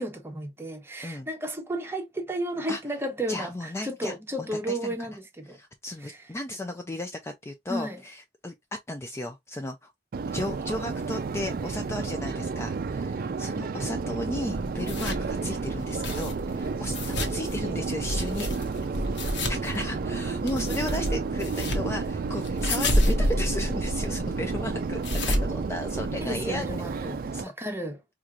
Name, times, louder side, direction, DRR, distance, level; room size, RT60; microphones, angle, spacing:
voice 1, 0.0-5.6 6.0-6.2 7.7-8.0 26.2-28.0, right 1 dB, 15° right, 0.8 m, -33 dB
voice 2, 3.3-4.9 5.5-8.5 8.9-9.9 10.3-18.5 19.5-26.6 27.0-27.4, left 1 dB, 15° left, 0.4 m, -35 dB
Subway metro underground, 10.1-27.4, right 4 dB, 55° right, 0.4 m, -31 dB
sound 1, 14.5-26.4, left 1 dB, 85° left, 1.0 m, -30 dB
4.4 x 2.5 x 2.3 m
head